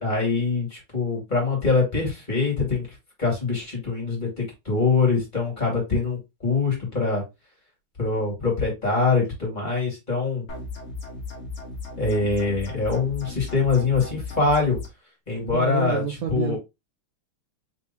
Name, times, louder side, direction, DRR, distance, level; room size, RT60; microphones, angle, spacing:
voice 1, 0.0-2.9 3.2-7.2 8.0-10.4 12.0-14.8 15.3-16.0 16.3-16.6, left 4 dB, 20° left, -2 dB, 2.4 m, -24 dB
sound 1, 10.5-14.9, left 3 dB, 40° left, 1.3 m, -36 dB
voice 2, 15.5-16.6, right 8 dB, 75° right, 2 dB, 0.8 m, -28 dB
4.3 x 3.5 x 2.8 m, 0.23 s
omnidirectional pair, 2.4 m